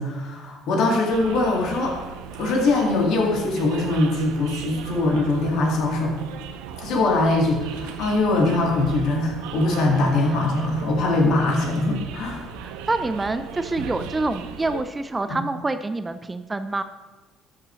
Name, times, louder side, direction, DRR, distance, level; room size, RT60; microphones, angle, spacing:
voice 1, 0.0-2.0 2.4-6.2 6.8-12.5 15.3-15.4, left 2 dB, 65° left, 0 dB, 2.0 m, -22 dB
sound 1, 1.1-14.8, right 7 dB, 70° right, 0.6 m, -37 dB
voice 2, 12.6-16.8, right 2 dB, 20° right, 10 dB, 0.6 m, -27 dB
13.0 x 6.6 x 3.2 m, 1.2 s
hypercardioid pair, 55°, 0 cm